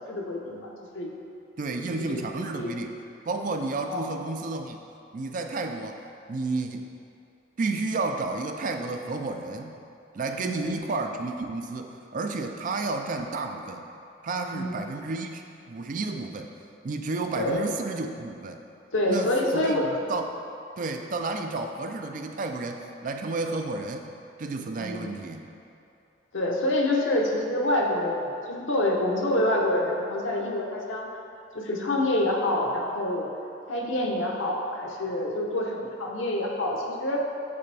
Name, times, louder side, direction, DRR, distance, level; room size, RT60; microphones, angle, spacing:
voice 1, 0.1-1.1 1.9-2.7 3.9-4.0 10.4-10.8 14.5-14.9 17.4-17.6 18.9-19.9 24.8-25.1 26.3-31.1 31.5-33.3 33.7-37.2, left 1 dB, 90° left, -1 dB, 0.8 m, -27 dB
voice 2, 1.6-2.9 3.3-4.8 5.1-6.0 6.3-6.9 7.6-9.8 10.1-13.9 14.2-16.5 16.8-18.6 19.1-20.3 20.8-24.1 24.4-25.4, right 3 dB, 45° right, 5 dB, 0.4 m, -31 dB
9.0 x 3.4 x 3.3 m, 2.6 s
head